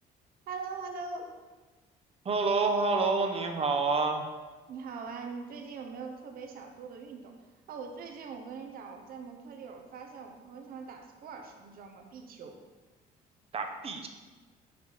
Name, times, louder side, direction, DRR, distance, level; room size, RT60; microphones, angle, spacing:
voice 1, 0.5-1.3 4.7-7.3 7.7-12.6, right 5 dB, 60° right, 4 dB, 1.0 m, -42 dB
voice 2, 2.2-4.3 13.5-14.1, right 3 dB, 35° right, 4 dB, 0.8 m, -28 dB
6.0 x 4.6 x 4.5 m, 1.3 s
cardioid pair, 110°, 17 cm